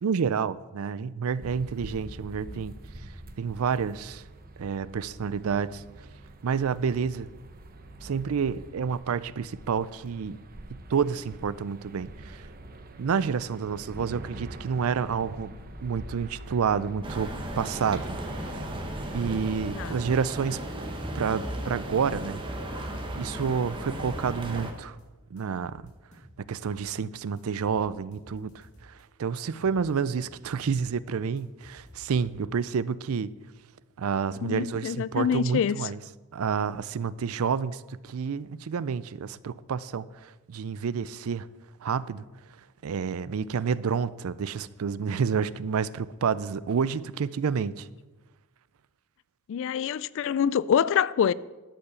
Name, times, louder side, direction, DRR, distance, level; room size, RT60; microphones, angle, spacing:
voice 1, 0.0-2.8 3.4-4.2 4.6-5.8 6.4-7.3 8.0-10.4 10.7-12.5 13.0-15.5 15.8-18.1 18.4-18.7 19.1-20.6 21.1-22.4 23.2-25.0 25.3-25.9 26.4-33.4 34.0-36.0 36.3-41.5 41.8-42.3 42.8-47.9, right 6 dB, 70° right, 0.4 m, -29 dB
sound 1, 1.4-19.7, right 1 dB, 40° right, 0.8 m, -45 dB
sound 2, 17.0-24.7, right 1 dB, 20° right, 1.1 m, -35 dB
voice 2, 19.7-20.1 34.4-35.9 49.5-51.3, left 8 dB, 60° left, 0.3 m, -26 dB
sound 3, 24.6-25.0 25.4-27.0 27.4-29.0 29.4-30.9 31.1-32.6, equal, 35° left, 1.9 m, -54 dB
12.0 x 5.6 x 6.9 m
head